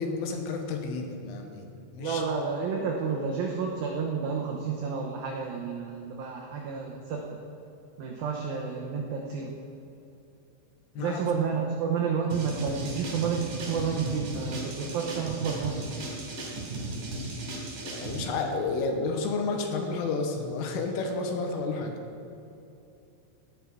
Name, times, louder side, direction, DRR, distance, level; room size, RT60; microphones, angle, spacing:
voice 1, 0.0-1.7 1.9-2.2 11.0-11.2 17.9-21.9, left 3 dB, 85° left, 3 dB, 3.7 m, -31 dB
voice 2, 2.0-7.4 8.0-9.6 11.0-15.8, right 6 dB, 85° right, -1 dB, 2.0 m, -30 dB
sound 1, 12.3-18.2, right 2 dB, 45° right, 3.5 m, -36 dB
18.0 x 8.9 x 4.7 m, 2.8 s
omnidirectional pair, 5.6 m